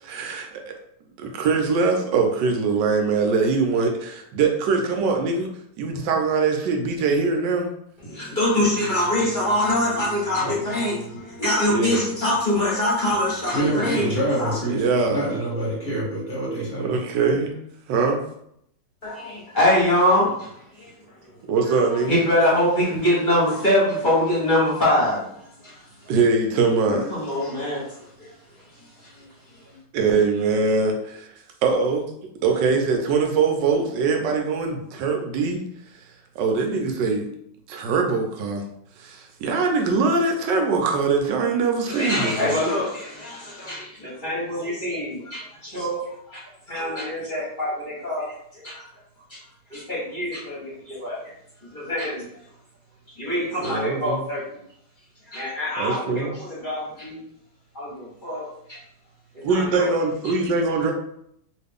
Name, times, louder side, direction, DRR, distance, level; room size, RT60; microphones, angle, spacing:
voice 1, 0.0-0.7 1.2-5.5 5.8-7.7 11.7-12.0 14.7-15.3 16.8-17.5 17.9-18.2 21.5-22.2 26.1-27.0 29.9-31.3 31.6-32.1 32.4-35.6 36.4-37.2 37.7-38.6 39.0-42.6 53.6-54.2 55.8-56.3 59.4-60.9, right 4 dB, 80° right, 3 dB, 1.2 m, -22 dB
voice 2, 8.0-14.6 19.0-21.4 21.6-26.1 26.9-29.8 41.9-46.0 46.3-46.4 46.7-48.8 49.3-49.4 49.7-51.3 51.7-52.3 53.1-54.6 55.3-57.2 57.7-58.8 59.5-59.9, left 1 dB, 35° left, -7 dB, 0.9 m, -24 dB
voice 3, 13.5-17.0, right 1 dB, 10° left, -7 dB, 1.1 m, -26 dB
3.2 x 2.4 x 3.5 m, 0.73 s
omnidirectional pair, 2.0 m